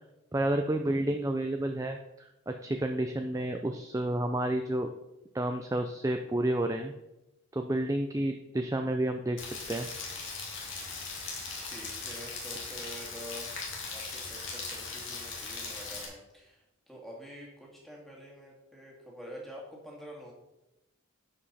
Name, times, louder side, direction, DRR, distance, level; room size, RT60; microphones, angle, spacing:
voice 1, 0.3-2.0 2.5-4.9 5.3-6.9 7.5-9.9, right 1 dB, 15° right, 5 dB, 0.4 m, -30 dB
Rain, 9.4-16.1, left 4 dB, 65° left, 2.3 m, -39 dB
voice 2, 11.6-13.6 13.9-20.3, equal, ahead, -3 dB, 2.0 m, -47 dB
11.5 x 5.2 x 4.1 m, 0.94 s
head